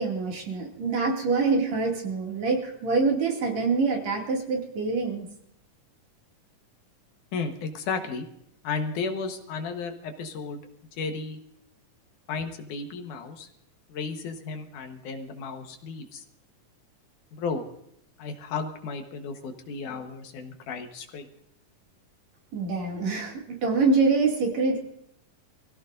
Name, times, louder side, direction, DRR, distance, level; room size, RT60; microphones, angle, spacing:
voice 1, 0.0-5.3 22.5-24.8, right 4 dB, 60° right, 0 dB, 3.6 m, -25 dB
voice 2, 7.3-8.3 8.6-10.6 11.0-11.4 12.3-13.5 13.9-16.2 17.3-17.6 18.2-21.3, left 4 dB, 75° left, 5 dB, 2.7 m, -33 dB
24.5 x 16.0 x 2.6 m, 0.73 s
omnidirectional pair, 3.7 m